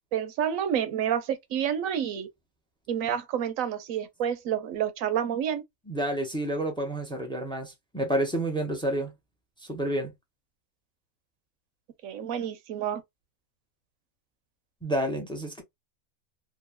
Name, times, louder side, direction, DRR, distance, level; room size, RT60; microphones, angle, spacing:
voice 1, 0.1-2.3 2.9-5.6 12.0-13.0, right 9 dB, 80° right, 1.1 m, -29 dB
voice 2, 5.9-9.1 9.7-10.1 14.8-15.6, right 1 dB, 5° left, 0.5 m, -29 dB
2.9 x 2.6 x 2.2 m
omnidirectional pair, 1.4 m